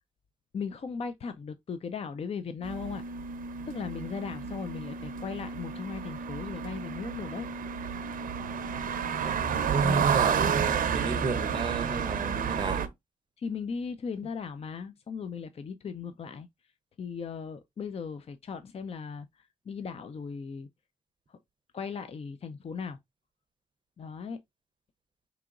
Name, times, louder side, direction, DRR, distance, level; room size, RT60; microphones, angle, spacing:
voice 1, 0.5-3.0 3.7-7.5 9.8-10.1 13.4-16.5 17.0-20.7 21.3-21.4 21.7-23.0 24.0-24.4, left 5 dB, 45° left, 0.4 m, -37 dB
sound 1, 2.6-12.9, right 7 dB, 75° right, 0.6 m, -31 dB
voice 2, 9.2-12.9, right 4 dB, 35° right, 0.6 m, -32 dB
4.8 x 2.9 x 2.4 m
cardioid pair, 65°, 14 cm